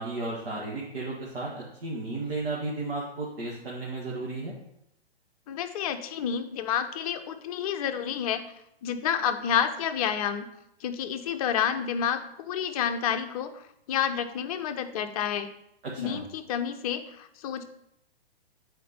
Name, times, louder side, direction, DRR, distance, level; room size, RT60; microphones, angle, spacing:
voice 1, 0.0-4.5 15.8-16.2, right 2 dB, 65° right, -4 dB, 1.6 m, -34 dB
voice 2, 5.5-8.5 8.8-10.5 10.8-15.5 16.0-17.6, left 8 dB, 35° left, 8 dB, 0.6 m, -29 dB
8.2 x 4.4 x 4.2 m, 0.78 s
figure-of-eight pair, 120°, 31 cm